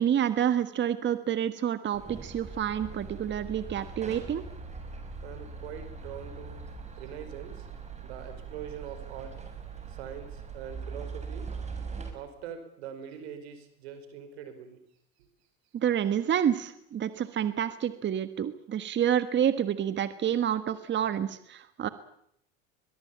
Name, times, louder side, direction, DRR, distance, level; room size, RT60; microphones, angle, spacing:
voice 1, 0.0-4.4 15.7-21.9, right 9 dB, 35° right, 12 dB, 1.5 m, -28 dB
sound 1, 1.9-12.1, right 5 dB, 20° right, 6.0 m, -41 dB
voice 2, 5.2-6.7 7.0-7.7 8.0-9.5 9.9-11.5 12.1-14.8, right 8 dB, 90° right, 9 dB, 5.2 m, -43 dB
22.5 x 21.5 x 8.7 m, 0.72 s
supercardioid pair, 100°, 31 cm